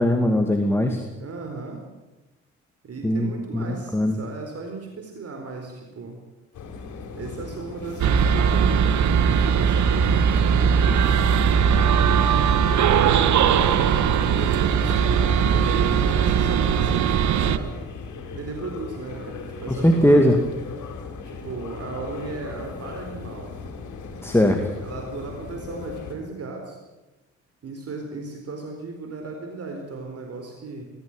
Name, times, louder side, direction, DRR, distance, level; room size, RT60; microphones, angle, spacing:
voice 1, 0.0-1.0 3.0-4.2 19.7-20.4 24.2-24.6, equal, 10° left, 4 dB, 2.4 m, -20 dB
voice 2, 1.1-1.8 2.8-6.2 7.1-11.2 13.1-17.8 18.3-20.3 21.2-23.5 24.8-26.8 27.6-30.8, right 3 dB, 50° right, 3 dB, 4.4 m, -36 dB
sound 1, 6.5-26.1, left 4 dB, 75° left, 4.7 m, -38 dB
sound 2, 8.0-17.6, right 7 dB, 70° right, 1.4 m, -19 dB
21.5 x 15.5 x 9.1 m, 1.1 s
cardioid pair, 90°, 30 cm